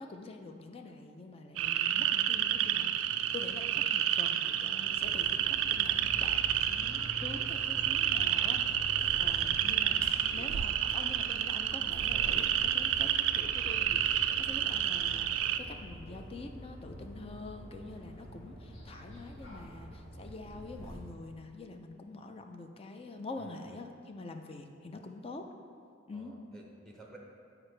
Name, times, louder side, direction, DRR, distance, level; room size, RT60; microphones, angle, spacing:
voice 1, 0.0-10.1 10.3-25.5 26.1-26.3, left 3 dB, 30° left, 5 dB, 0.4 m, -46 dB
sound 1, 1.6-15.6, right 10 dB, 80° right, 0.3 m, -30 dB
voice 2, 2.3-2.8 12.1-12.5 23.4-23.8 26.1-27.2, right 1 dB, 5° left, -2 dB, 0.8 m, -54 dB
sound 2, 4.9-21.0, equal, 75° left, 1.4 m, -46 dB
8.0 x 4.8 x 3.3 m, 2.3 s
head